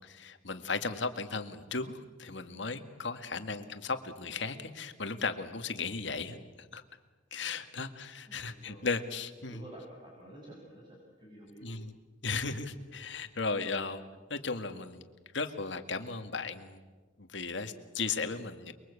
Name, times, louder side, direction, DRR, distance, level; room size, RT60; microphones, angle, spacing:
voice 1, 0.0-6.8 7.3-9.6 11.6-11.9 12.2-14.0 14.3-15.0 15.3-16.8 17.2-18.7, left 4 dB, 70° left, 8 dB, 1.9 m, -36 dB
voice 2, 8.3-8.9 9.5-11.7, right 1 dB, 25° right, -3 dB, 6.4 m, -51 dB
29.5 x 22.5 x 8.4 m, 1.3 s
head